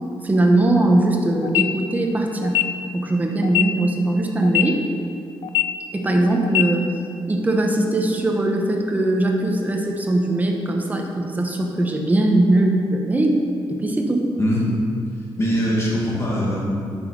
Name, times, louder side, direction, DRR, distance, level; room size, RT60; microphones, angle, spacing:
voice 1, 0.2-2.6 2.9-4.8 5.9-6.9 7.3-13.4 13.7-14.3, right 1 dB, 20° right, 1 dB, 1.0 m, -20 dB
sound 1, 1.4-1.6 2.4-2.6 3.4-3.6 4.4-4.6 5.4-5.6 6.4-6.6, left 17 dB, 85° left, 0.4 m, -20 dB
voice 2, 14.4-14.8 15.4-16.6, equal, 30° left, -5 dB, 2.2 m, -21 dB
10.5 x 6.2 x 4.7 m, 2.4 s
wide cardioid pair, 150°, 9 cm